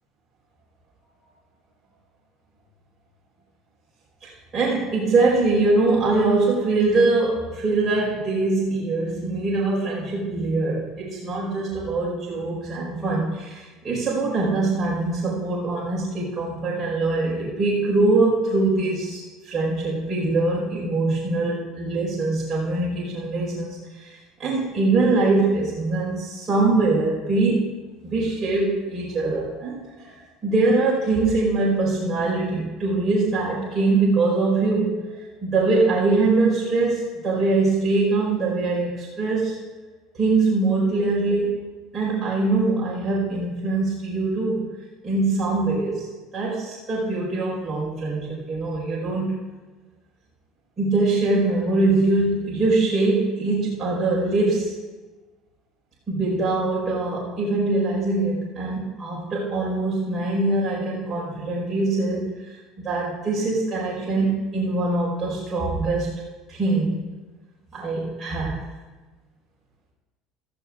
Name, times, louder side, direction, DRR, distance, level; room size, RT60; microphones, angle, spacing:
voice 1, 4.2-27.7 28.0-39.6 40.1-41.6 41.9-44.7 45.0-49.4 50.8-54.7 56.1-66.1 66.5-67.0 67.7-68.6, right 3 dB, 20° right, -6 dB, 4.6 m, -23 dB
15.5 x 14.0 x 2.5 m, 1.2 s
cardioid pair, 145°, 0 cm